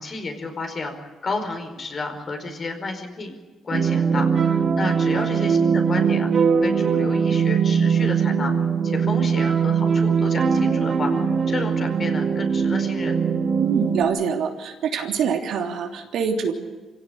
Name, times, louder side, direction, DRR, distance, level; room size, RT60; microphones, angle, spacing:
voice 1, 0.0-3.4 3.6-6.3 6.6-8.5 8.8-13.2, left 3 dB, 45° left, 5 dB, 5.0 m, -31 dB
sound 1, 3.7-14.0, right 6 dB, 50° right, 2.8 m, -21 dB
voice 2, 4.8-5.3 13.6-16.5, right 6 dB, 75° right, 3 dB, 3.2 m, -25 dB
25.5 x 16.5 x 8.7 m, 1.2 s
cardioid pair, 90°, 0 cm